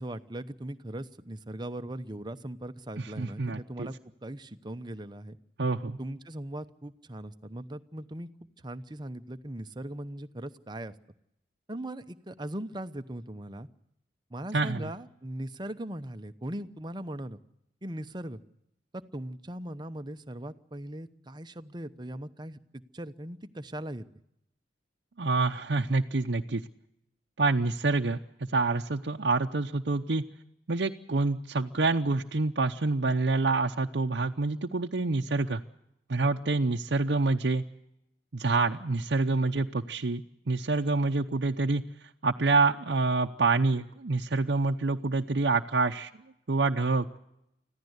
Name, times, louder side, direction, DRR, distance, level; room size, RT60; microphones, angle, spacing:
voice 1, 0.0-3.9 4.2-5.4 6.0-8.3 8.6-10.9 11.7-13.7 14.3-17.4 17.8-18.4 18.9-24.0, right 1 dB, 25° right, 10 dB, 0.9 m, -39 dB
voice 2, 3.0-3.9 5.6-6.0 14.5-14.9 25.2-26.6 27.4-28.2 28.5-30.2 30.7-35.6 36.1-37.6 38.3-41.8 42.2-46.1 46.5-47.2, right 3 dB, 65° right, 1 dB, 0.8 m, -27 dB
25.5 x 15.0 x 8.1 m, 0.83 s
head